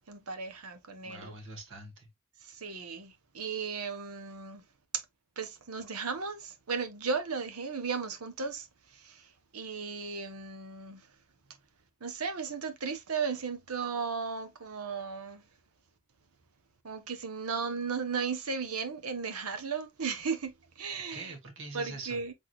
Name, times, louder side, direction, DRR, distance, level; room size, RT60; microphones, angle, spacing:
voice 1, 0.1-1.3 2.5-4.6 5.4-8.7 9.0-9.2 9.5-11.1 12.0-15.4 16.8-21.3 21.7-22.3, right 5 dB, 85° right, 1.1 m, -35 dB
voice 2, 1.0-2.1 21.1-22.2, right 2 dB, 60° right, 1.7 m, -44 dB
6.0 x 3.7 x 2.3 m
head